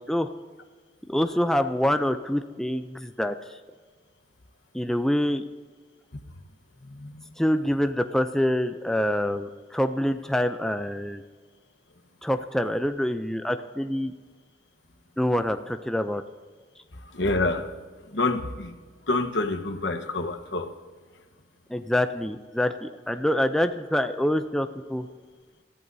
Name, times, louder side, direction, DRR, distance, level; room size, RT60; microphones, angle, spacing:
voice 1, 1.1-3.3 4.7-5.4 7.4-11.2 12.2-14.1 15.2-16.2 21.7-25.1, left 1 dB, 5° left, 8 dB, 0.4 m, -26 dB
voice 2, 6.8-7.3 17.0-17.7 18.1-18.8 19.1-20.7, left 2 dB, 70° left, 6 dB, 1.1 m, -27 dB
24.5 x 14.0 x 2.7 m, 1.5 s
head